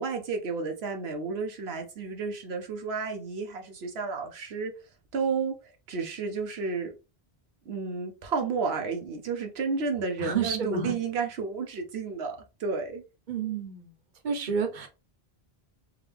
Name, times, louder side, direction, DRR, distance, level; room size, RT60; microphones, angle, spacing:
voice 1, 0.0-4.7 5.1-6.9 7.7-13.0, right 4 dB, 80° right, 1.0 m, -31 dB
voice 2, 10.2-10.9 13.3-13.9 14.2-14.9, right 6 dB, 50° right, 0.9 m, -30 dB
3.6 x 2.9 x 3.4 m
omnidirectional pair, 1.0 m